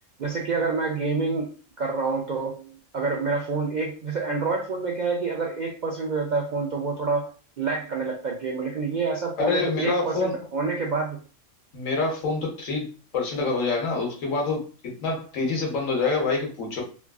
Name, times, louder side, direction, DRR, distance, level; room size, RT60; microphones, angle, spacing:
voice 1, 0.2-1.5 1.8-11.2, right 4 dB, 70° right, 0 dB, 0.4 m, -27 dB
voice 2, 9.4-10.3 11.7-12.9 13.1-16.8, left 3 dB, 90° left, 1 dB, 1.3 m, -26 dB
3.1 x 2.3 x 2.3 m, 0.37 s
omnidirectional pair, 1.3 m